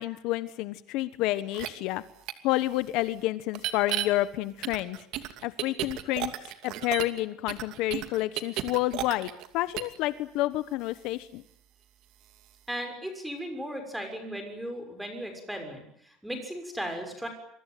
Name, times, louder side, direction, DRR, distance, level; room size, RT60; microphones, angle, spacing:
voice 1, 0.0-2.0 2.4-5.0 5.4-6.3 6.6-11.4, left 16 dB, 60° left, 14 dB, 1.2 m, -29 dB
sound 1, 1.5-1.7 2.3-2.4 3.5-4.1 4.6-7.2 7.5-9.5 9.8-10.0, right 14 dB, 50° right, 2.6 m, -33 dB
voice 2, 12.7-17.3, equal, 5° right, 6 dB, 6.3 m, -36 dB
27.0 x 23.0 x 9.3 m, 0.69 s
cardioid pair, 165°, 0 cm